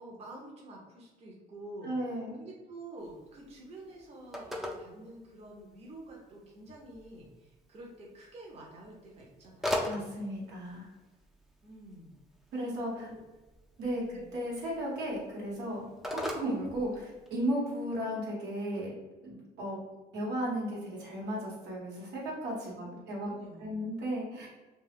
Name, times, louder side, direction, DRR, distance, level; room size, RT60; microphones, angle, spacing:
voice 1, 0.0-2.0 2.4-10.2 11.6-12.1 13.0-13.2 14.0-14.3 22.6-23.8, right 1 dB, 40° right, -2 dB, 0.7 m, -49 dB
voice 2, 1.8-2.4 9.8-10.9 12.5-13.1 13.8-15.8 16.1-18.9 19.2-19.8 20.1-23.3 23.6-24.5, equal, 80° right, -4 dB, 1.1 m, -35 dB
Telephone, 3.0-17.5, left 1 dB, ahead, 0.4 m, -42 dB
2.4 x 2.3 x 3.4 m, 1.1 s
cardioid pair, 110°, 17 cm